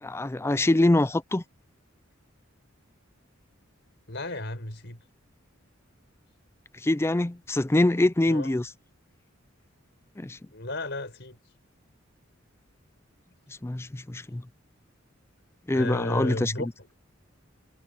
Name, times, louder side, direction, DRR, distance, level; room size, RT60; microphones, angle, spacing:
voice 1, 0.0-1.4 6.8-8.7 10.2-10.4 13.6-14.4 15.7-16.7, left 1 dB, 15° left, 0.4 m, -24 dB
voice 2, 4.1-5.0 8.3-8.5 10.5-11.4 15.7-16.7, left 2 dB, 60° left, 5.2 m, -33 dB
head